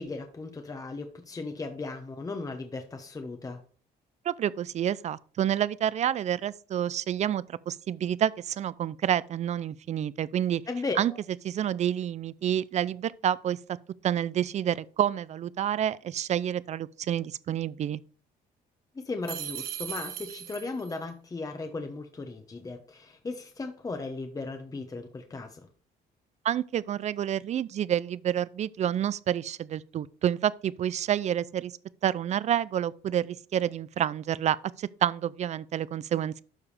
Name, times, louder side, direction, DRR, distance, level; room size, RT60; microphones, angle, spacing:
voice 1, 0.0-3.6 10.7-11.0 18.9-25.7, left 3 dB, 20° left, 1.0 m, -36 dB
voice 2, 4.2-10.6 11.0-11.1 11.4-13.6 14.0-18.0 26.4-31.7 32.0-36.4, right 10 dB, 45° right, 0.5 m, -28 dB
sound 1, 19.3-21.0, right 11 dB, 65° right, 1.3 m, -38 dB
12.5 x 4.8 x 3.4 m
cardioid pair, 110°, 17 cm